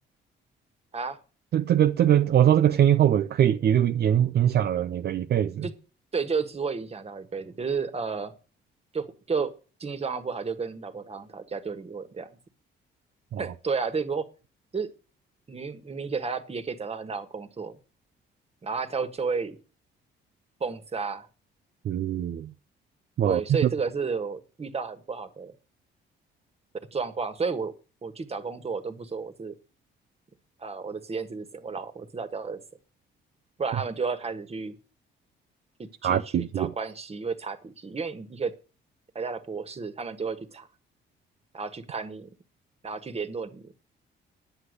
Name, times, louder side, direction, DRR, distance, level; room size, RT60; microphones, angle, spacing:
voice 1, 1.5-5.6 13.3-13.5 21.8-22.5 23.2-23.7 36.0-36.7, right 10 dB, 55° right, 0.6 m, -22 dB
voice 2, 6.1-8.3 8.9-9.5 9.8-12.3 13.4-14.3 14.7-14.9 15.5-17.8 18.6-19.6 20.6-21.3 23.2-25.5 26.9-27.7 28.0-29.5 30.6-32.6 33.6-34.8 35.8-38.5 39.1-40.7 41.5-42.3 42.8-43.7, right 5 dB, 30° right, 1.6 m, -32 dB
10.0 x 8.0 x 6.5 m
cardioid pair, 90°, 20 cm